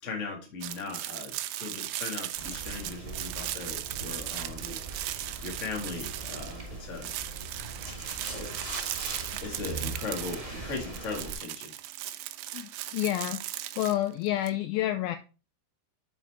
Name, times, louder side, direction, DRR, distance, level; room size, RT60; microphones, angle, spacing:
voice 1, 0.0-4.8 5.4-7.1 8.3-8.5 9.4-11.7, left 4 dB, 50° left, 1 dB, 0.8 m, -38 dB
sound 1, 0.6-6.7 7.0-14.5, right 14 dB, 80° right, 2.4 m, -37 dB
sound 2, 2.3-11.3, right 3 dB, 40° right, 0.5 m, -40 dB
voice 2, 12.5-13.4 13.8-15.2, left 13 dB, 85° left, 9 dB, 2.1 m, -29 dB
7.0 x 4.5 x 4.1 m, 0.32 s
omnidirectional pair, 4.6 m